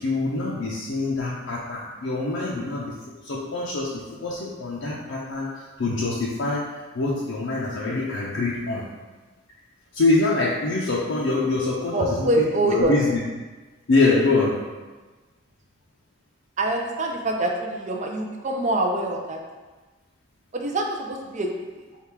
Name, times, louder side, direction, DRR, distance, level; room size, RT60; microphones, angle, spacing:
voice 1, 0.0-3.0 3.2-6.7 6.9-8.9 9.9-13.2 13.9-14.6, left 3 dB, 75° left, -5 dB, 0.5 m, -24 dB
voice 2, 11.9-13.0 16.6-19.4 20.5-21.5, right 1 dB, 35° right, 1 dB, 0.5 m, -25 dB
3.5 x 2.4 x 4.4 m, 1.3 s
head